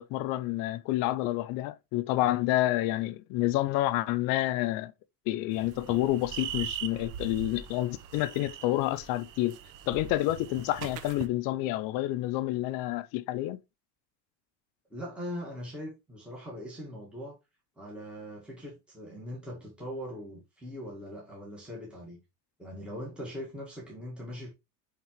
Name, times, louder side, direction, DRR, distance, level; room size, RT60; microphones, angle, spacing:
voice 1, 0.0-4.9 5.3-9.6 9.9-13.6, left 16 dB, 70° left, 0.6 m, -29 dB
sound 1, 5.5-11.3, right 10 dB, 60° right, 0.9 m, -41 dB
voice 2, 14.9-17.4 17.8-22.2 22.6-24.5, equal, 5° right, 1.7 m, -41 dB
9.2 x 3.8 x 3.1 m
cardioid pair, 160°, 36 cm